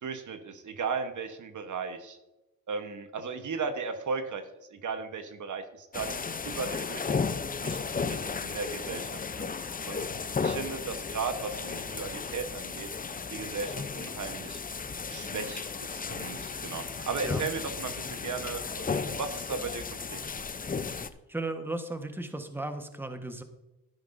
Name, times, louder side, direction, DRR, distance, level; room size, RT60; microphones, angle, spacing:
voice 1, 0.0-2.2 2.7-4.4 4.7-7.8 8.1-9.5 9.9-10.1 10.4-12.9 13.3-14.6 15.1-19.8 20.1-20.2, right 5 dB, 50° right, 8 dB, 1.3 m, -36 dB
sound 1, 5.9-21.1, left 5 dB, 20° left, 0.7 m, -34 dB
voice 2, 21.3-23.4, right 2 dB, 5° right, 7 dB, 1.4 m, -35 dB
12.5 x 10.5 x 2.7 m, 0.98 s
supercardioid pair, 65°, 39 cm